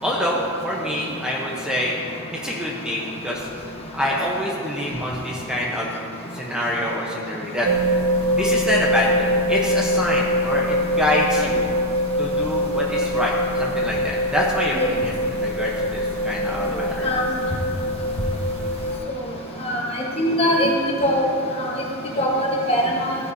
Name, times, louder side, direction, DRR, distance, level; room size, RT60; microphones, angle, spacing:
voice 1, 0.0-1.9 2.3-3.5 3.9-5.9 6.3-7.7 8.3-11.7 12.2-17.1, equal, 5° right, -4 dB, 1.0 m, -26 dB
sound 1, 7.6-19.0, equal, 70° right, 0.8 m, -23 dB
voice 2, 20.2-20.7 21.0-21.2 21.6-21.7 22.2-23.1, equal, 30° left, -2 dB, 1.4 m, -21 dB
15.0 x 9.7 x 2.8 m, 2.4 s
head